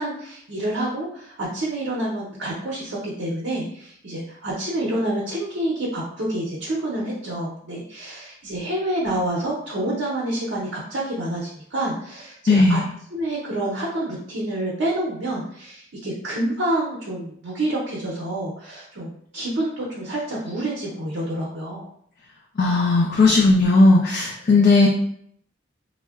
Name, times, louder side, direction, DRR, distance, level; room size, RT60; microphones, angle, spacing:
voice 1, 0.0-12.8 13.1-21.9 24.5-24.6, right 1 dB, 65° right, -5 dB, 0.6 m, -28 dB
voice 2, 12.5-12.8 22.6-24.9, left 3 dB, 45° left, -1 dB, 0.3 m, -16 dB
3.5 x 2.0 x 2.3 m, 0.67 s
head